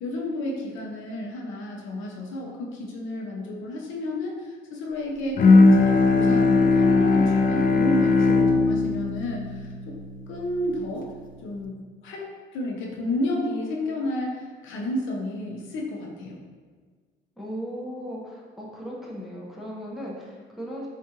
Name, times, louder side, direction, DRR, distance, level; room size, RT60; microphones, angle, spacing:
voice 1, 0.0-5.5 5.8-10.0 10.3-11.1 11.4-16.4, left 1 dB, 85° left, -1 dB, 0.6 m, -31 dB
Bowed string instrument, 5.4-10.8, left 3 dB, 45° left, 0.4 m, -19 dB
voice 2, 17.4-20.9, equal, ahead, -5 dB, 0.8 m, -37 dB
4.5 x 2.4 x 2.8 m, 1.5 s
cardioid pair, 90°, 20 cm